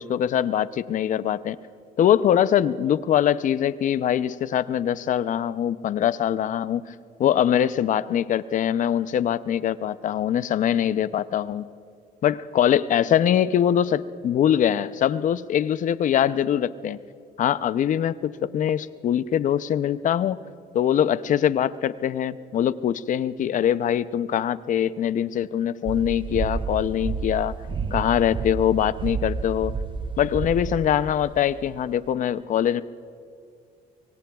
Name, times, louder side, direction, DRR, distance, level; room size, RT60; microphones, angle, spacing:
voice 1, 0.0-1.6 2.0-6.8 7.2-11.7 12.2-17.0 17.4-20.4 20.7-27.6 27.9-29.7 30.2-32.8, left 10 dB, 50° left, 15 dB, 0.5 m, -23 dB
sound 1, 25.9-32.0, right 5 dB, 30° right, 0.7 m, -31 dB
24.0 x 23.0 x 2.3 m, 2.3 s
cardioid pair, 110°, 17 cm